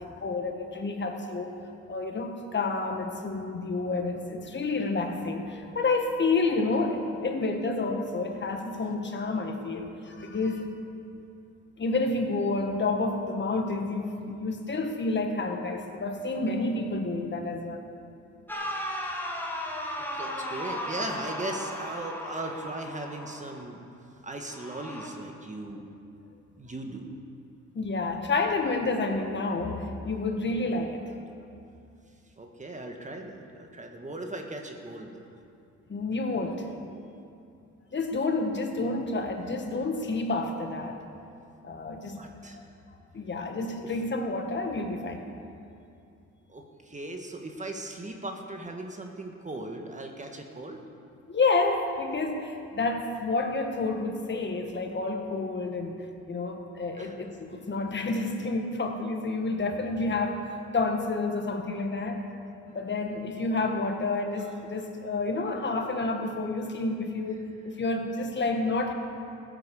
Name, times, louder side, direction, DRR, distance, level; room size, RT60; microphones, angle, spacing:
voice 1, 0.0-1.5 1.9-10.7 11.8-17.8 27.7-31.0 35.9-36.8 37.9-41.0 41.6-42.2 43.1-45.3 51.3-56.0 56.3-62.2 62.7-68.9, left 3 dB, 35° left, 3 dB, 1.6 m, -29 dB
sound 1, 18.5-23.6 24.5-25.1, equal, 5° left, 2.1 m, -35 dB
voice 2, 20.1-23.8 24.2-25.8 26.6-27.1 32.4-35.2 42.1-42.6 43.8-43.9 46.5-50.8 57.0-57.2, right 2 dB, 25° right, 3 dB, 1.5 m, -38 dB
15.5 x 9.2 x 6.9 m, 2.6 s
cardioid pair, 90°, 30 cm